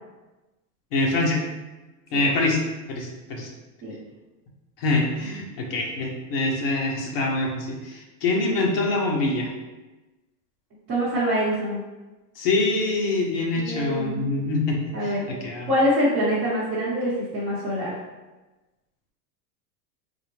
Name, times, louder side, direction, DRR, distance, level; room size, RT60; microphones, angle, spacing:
voice 1, 0.9-1.4 2.1-2.6 2.9-3.5 4.8-9.5 12.4-15.7, left 2 dB, 35° left, -1 dB, 0.5 m, -25 dB
voice 2, 10.9-11.8 13.6-14.3 14.9-15.2 15.6-17.9, equal, 30° right, -11 dB, 0.8 m, -24 dB
3.7 x 2.1 x 3.0 m, 1.1 s
supercardioid pair, 165°, 50 cm